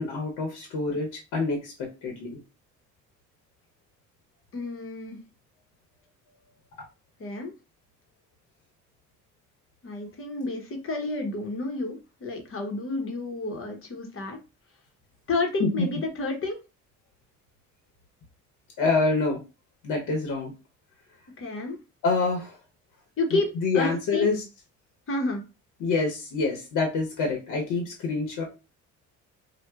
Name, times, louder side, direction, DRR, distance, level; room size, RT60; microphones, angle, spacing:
voice 1, 0.0-2.4 15.6-15.7 18.8-19.4 19.8-20.5 22.0-22.6 23.3-24.4 25.8-28.4, left 3 dB, 85° left, 1 dB, 0.9 m, -26 dB
voice 2, 4.5-5.2 7.2-7.5 9.8-14.4 15.3-16.6 21.4-21.8 23.2-24.3 25.1-25.4, left 2 dB, 45° left, 2 dB, 0.9 m, -30 dB
4.2 x 2.2 x 2.3 m, 0.29 s
cardioid pair, 90°, 30 cm